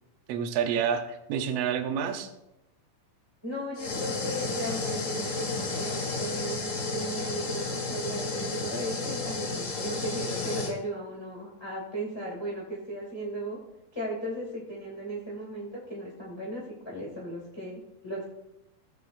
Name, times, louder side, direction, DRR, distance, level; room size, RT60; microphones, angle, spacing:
voice 1, 0.3-2.3, right 7 dB, 80° right, 6 dB, 1.4 m, -28 dB
voice 2, 3.4-13.6 13.9-18.3, right 1 dB, 10° left, -4 dB, 1.4 m, -36 dB
sound 1, 3.8-10.7, left 3 dB, 45° left, 1.0 m, -32 dB
17.5 x 7.7 x 2.6 m, 0.90 s
omnidirectional pair, 4.1 m